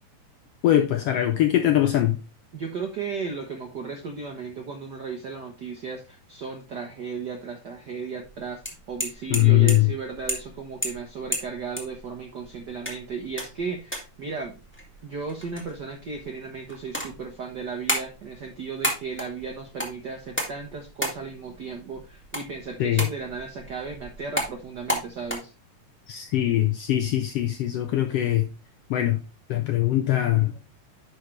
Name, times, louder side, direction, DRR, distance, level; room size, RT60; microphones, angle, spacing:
voice 1, 0.6-2.2 9.3-9.9 22.8-23.1 26.1-28.5 28.9-29.2 29.5-30.5, left 13 dB, 80° left, 1.4 m, -21 dB
voice 2, 2.5-14.5 15.0-25.5, right 5 dB, 70° right, 1.0 m, -35 dB
sound 1, 8.2-25.3, equal, 5° left, 1.4 m, -35 dB
10.5 x 5.0 x 3.2 m
omnidirectional pair, 3.4 m